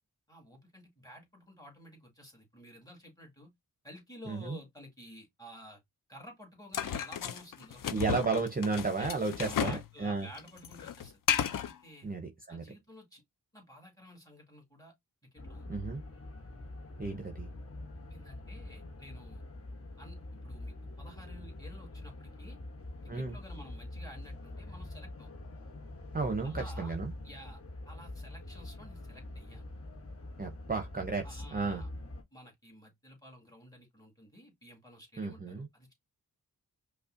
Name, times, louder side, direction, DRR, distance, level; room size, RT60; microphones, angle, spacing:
voice 1, 0.3-3.5 3.8-5.8 6.1-7.8 9.0-11.2 11.6-12.1 12.5-13.2 13.5-14.9 15.3-15.7 18.1-19.4 20.0-22.6 23.0-25.3 26.4-26.9 27.2-29.6 31.2-31.9 32.3-35.9, equal, 10° left, 1.8 m, -52 dB
voice 2, 4.3-4.6 7.9-10.3 12.0-12.6 15.7-16.0 17.0-17.5 23.1-23.4 26.1-27.1 30.4-31.8 35.2-35.7, right 4 dB, 25° right, 0.6 m, -33 dB
sound 1, 6.7-9.9 10.1-11.7, left 9 dB, 60° left, 0.5 m, -33 dB
sound 2, 15.4-32.2, left 1 dB, 40° left, 1.0 m, -45 dB
5.2 x 2.2 x 2.5 m
wide cardioid pair, 105°, 37 cm